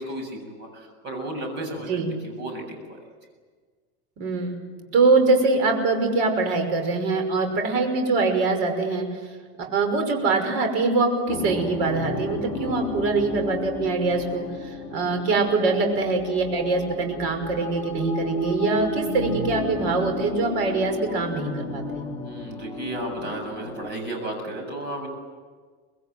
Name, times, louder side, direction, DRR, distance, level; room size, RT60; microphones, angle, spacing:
voice 1, 0.0-2.6 2.9-3.0 22.2-25.1, right 1 dB, 35° right, 3 dB, 7.4 m, -33 dB
voice 2, 4.2-4.5 4.9-9.1 9.6-14.4 14.9-22.1, right 3 dB, 55° right, 5 dB, 5.8 m, -23 dB
sound 1, 11.3-23.9, left 2 dB, 10° left, 4.1 m, -33 dB
25.5 x 20.5 x 9.5 m, 1.6 s
supercardioid pair, 160°, 32 cm